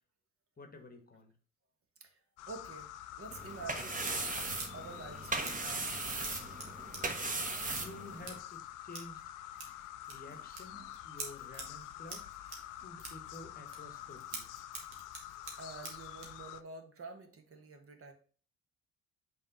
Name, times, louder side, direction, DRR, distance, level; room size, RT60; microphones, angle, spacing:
voice 1, 0.6-1.3 7.8-9.2 10.1-12.3 12.8-14.5, left 2 dB, 25° left, 6 dB, 1.1 m, -51 dB
sound 1, 2.4-16.6, left 13 dB, 60° left, 0.5 m, -47 dB
voice 2, 2.5-6.1 9.7-9.8 10.3-10.5 10.7-11.0 15.6-18.1, right 3 dB, 40° right, 6 dB, 1.3 m, -49 dB
sound 2, 3.3-8.4, right 3 dB, 25° right, 1.1 m, -38 dB
Scissors, 3.4-16.4, right 3 dB, 85° right, 1.3 m, -50 dB
5.5 x 3.2 x 5.3 m, 0.41 s
hypercardioid pair, 55°, 35 cm